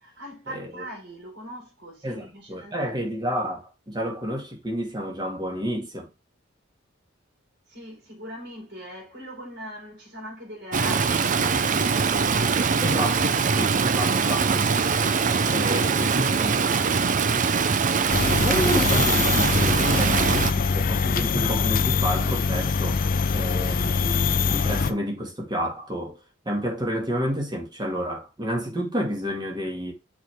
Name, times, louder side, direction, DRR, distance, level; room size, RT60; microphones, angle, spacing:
voice 1, 0.0-3.3 7.7-12.6, equal, 60° right, 4.5 m, -41 dB
voice 2, 2.0-3.6 3.9-6.1 12.8-14.7 15.5-16.9 18.4-26.2 26.5-29.9, equal, 20° right, 2.1 m, -30 dB
Stream, 10.7-20.5, right 5 dB, 40° right, 0.5 m, -22 dB
sound 1, 18.1-24.9, left 5 dB, 45° left, 0.5 m, -23 dB
6.5 x 4.8 x 3.5 m
head